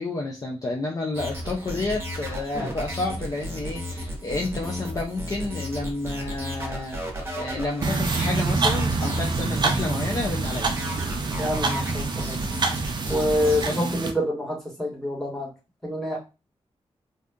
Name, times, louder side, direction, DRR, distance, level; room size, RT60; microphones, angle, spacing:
voice 1, 0.0-7.0 7.3-10.7 13.4-13.9, left 2 dB, 35° left, -1 dB, 0.5 m, -30 dB
sound 1, 1.1-13.7, equal, 20° right, 1.0 m, -34 dB
sound 2, 7.8-14.1, right 3 dB, 40° right, 0.4 m, -26 dB
voice 2, 11.4-12.4 13.1-15.5 15.8-16.2, left 1 dB, 5° left, -3 dB, 1.2 m, -27 dB
2.7 x 2.4 x 3.5 m, 0.29 s
wide cardioid pair, 150°, 11 cm